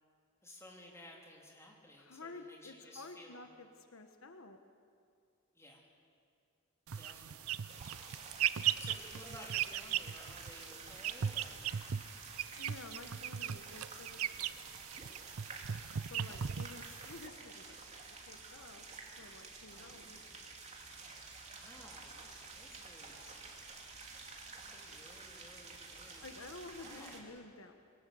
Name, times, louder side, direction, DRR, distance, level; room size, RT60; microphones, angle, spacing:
voice 1, 0.4-3.5 5.5-5.9 6.9-7.7 8.8-11.7 16.3-16.5 19.7-20.4 21.5-23.4 24.5-26.4 26.7-27.4, left 1 dB, 15° left, -1 dB, 3.3 m, -56 dB
voice 2, 2.0-4.6 12.6-14.6 16.1-18.8 19.2-20.2 26.2-27.7, left 3 dB, 75° left, 6 dB, 1.3 m, -51 dB
sound 1, 6.9-17.3, right 9 dB, 90° right, 0.6 m, -38 dB
sound 2, 7.7-27.2, right 4 dB, 30° right, 2.8 m, -51 dB
23.5 x 19.0 x 7.8 m, 2.3 s
head